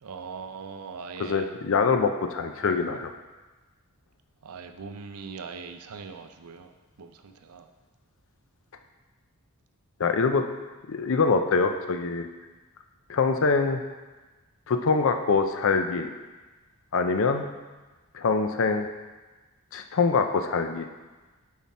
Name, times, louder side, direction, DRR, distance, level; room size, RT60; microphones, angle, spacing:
voice 1, 0.0-1.5 2.6-2.8 4.4-6.7 7.0-7.7, right 5 dB, 85° right, 7 dB, 0.6 m, -41 dB
voice 2, 1.2-3.1 10.0-10.4 10.9-12.3 13.1-13.8 14.7-16.1 16.9-17.5 18.1-18.9 19.7-20.9, left 4 dB, 60° left, 6 dB, 0.5 m, -24 dB
7.3 x 5.7 x 4.2 m, 1.2 s
head